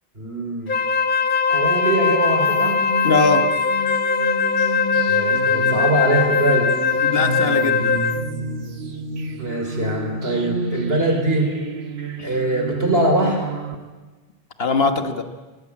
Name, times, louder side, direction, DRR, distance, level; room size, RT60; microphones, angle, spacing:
voice 1, 0.2-0.7 1.5-2.8 5.1-6.7 9.4-11.5 12.2-13.4, right 1 dB, 70° right, 2 dB, 4.9 m, -22 dB
Wind instrument woodwind instrument, 0.7-8.3, left 5 dB, 55° left, 1.1 m, -20 dB
sound 1, 2.5-13.7, right 2 dB, 90° right, 1.6 m, -30 dB
voice 2, 3.0-3.5 7.0-8.0 12.2-12.3 14.6-15.2, left 3 dB, 70° left, 7 dB, 1.6 m, -21 dB
19.0 x 18.5 x 8.8 m, 1.3 s
omnidirectional pair, 1.0 m